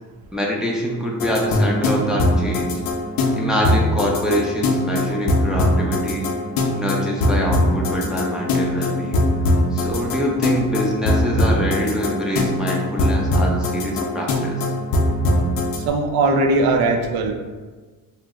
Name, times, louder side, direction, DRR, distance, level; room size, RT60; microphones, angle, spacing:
voice 1, 0.3-2.7 3.3-6.3 6.8-9.3 9.7-14.7, equal, ahead, -2 dB, 0.4 m, -25 dB
sound 1, 1.2-15.8, left 1 dB, 60° left, 0.6 m, -21 dB
voice 2, 15.8-17.3, right 2 dB, 75° right, 4 dB, 0.5 m, -19 dB
2.8 x 2.1 x 3.5 m, 1.4 s
cardioid pair, 115°, 38 cm